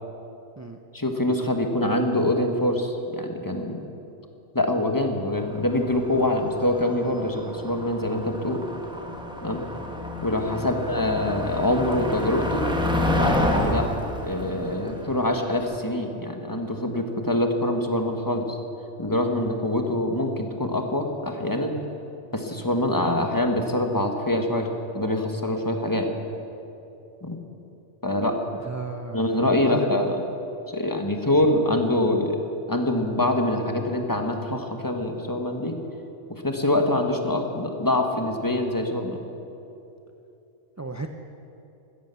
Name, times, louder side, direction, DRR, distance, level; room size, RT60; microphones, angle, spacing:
voice 1, 0.9-3.8 4.5-8.6 9.4-9.6 10.2-12.7 13.2-18.6 19.0-21.7 22.3-24.7 24.9-26.1 27.2-27.4 28.0-28.4 29.1-30.2 30.7-32.4 32.7-35.8 36.3-39.2, left 1 dB, 15° left, 4 dB, 1.3 m, -25 dB
Motor vehicle (road), 5.4-15.8, left 1 dB, 5° right, 1.1 m, -29 dB
voice 2, 28.6-30.1 40.8-41.1, right 3 dB, 25° right, 5 dB, 0.3 m, -34 dB
15.5 x 13.5 x 6.9 m, 2.9 s
omnidirectional pair, 1.3 m